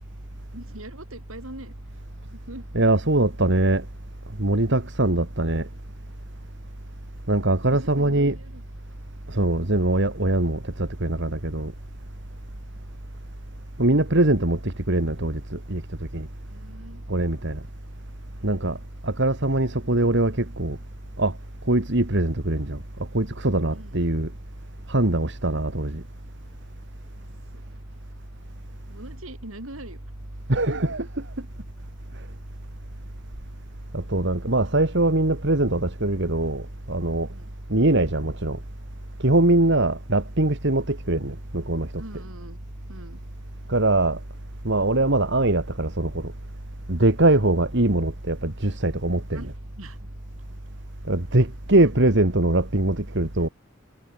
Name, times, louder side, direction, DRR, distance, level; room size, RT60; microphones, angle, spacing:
voice 1, 0.5-2.7 7.6-8.6 12.3-12.6 16.4-17.0 18.3-18.9 23.7-24.2 27.5-27.7 28.9-30.0 30.7-30.9 37.2-37.5 39.4-39.8 42.0-42.6 42.9-43.2 49.3-50.0 51.8-52.1 53.3-53.5, right 1 dB, 85° right, 6.7 m, -43 dB
voice 2, 2.7-3.8 4.4-5.7 7.3-8.3 9.3-11.7 13.8-15.8 16.1-16.3 17.1-17.6 18.4-18.8 19.0-20.8 21.2-21.3 21.7-22.8 23.1-24.3 24.9-26.0 30.5-31.0 33.9-37.3 37.7-38.6 39.2-41.9 43.7-44.2 44.6-46.3 46.9-49.4 51.1-53.5, right 2 dB, 60° right, 2.5 m, -22 dB
head